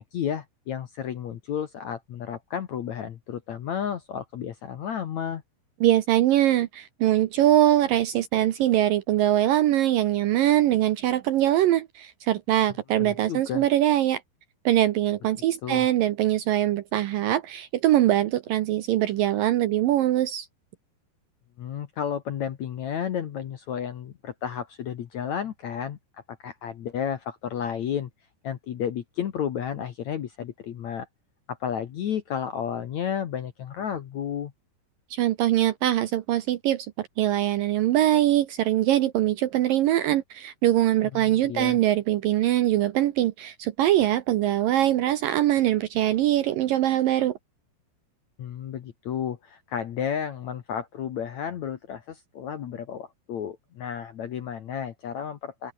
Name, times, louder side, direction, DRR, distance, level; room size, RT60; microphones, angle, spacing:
voice 1, 0.0-5.4 13.0-13.6 15.6-15.9 21.6-28.1 28.4-31.1 31.5-34.5 41.1-41.8 48.4-55.7, left 8 dB, 60° left, 2.0 m, -32 dB
voice 2, 5.8-14.2 14.7-20.5 35.1-47.3, right 13 dB, 70° right, 2.2 m, -22 dB
open air
omnidirectional pair, 4.9 m